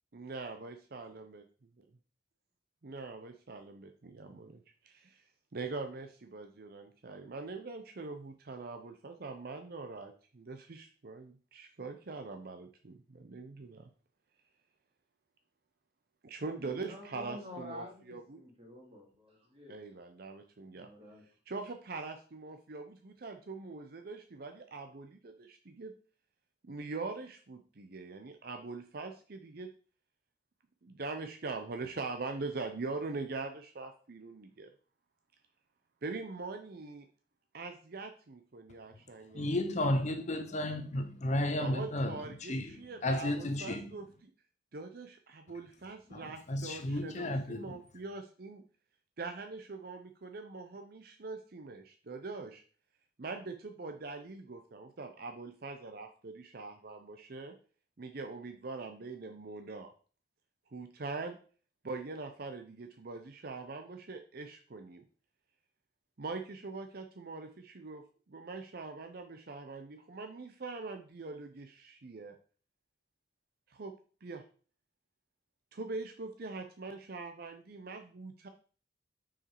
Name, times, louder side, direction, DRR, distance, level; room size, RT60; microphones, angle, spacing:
voice 1, 0.1-1.4 2.8-5.2 5.5-13.9 16.2-18.4 19.7-20.9 21.5-25.9 26.6-29.7 30.8-34.7 36.0-37.1 37.5-39.6 41.6-44.3 44.7-48.6 49.2-52.6 53.2-57.5 58.0-59.9 60.7-61.4 61.8-65.0 66.2-72.4 73.7-73.9 74.2-74.4 75.7-78.5, right 3 dB, 55° right, 0.6 m, -43 dB
voice 2, 16.6-19.9 20.8-21.2, left 1 dB, 30° right, 2.2 m, -49 dB
voice 3, 39.3-43.9 46.1-47.8, left 1 dB, 40° left, 0.6 m, -33 dB
6.0 x 4.9 x 4.7 m
head